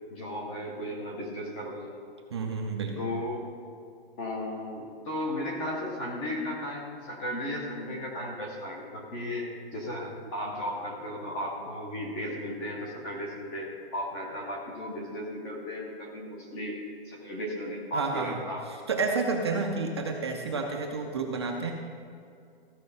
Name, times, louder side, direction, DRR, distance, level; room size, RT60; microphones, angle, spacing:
voice 1, 0.1-2.0 3.0-3.5 4.2-18.7, left 1 dB, 10° left, -1 dB, 0.7 m, -35 dB
voice 2, 2.3-3.0 17.9-18.4 18.7-21.7, right 4 dB, 25° right, 1 dB, 0.5 m, -30 dB
14.5 x 5.1 x 5.4 m, 2.4 s
hypercardioid pair, 170°, 31 cm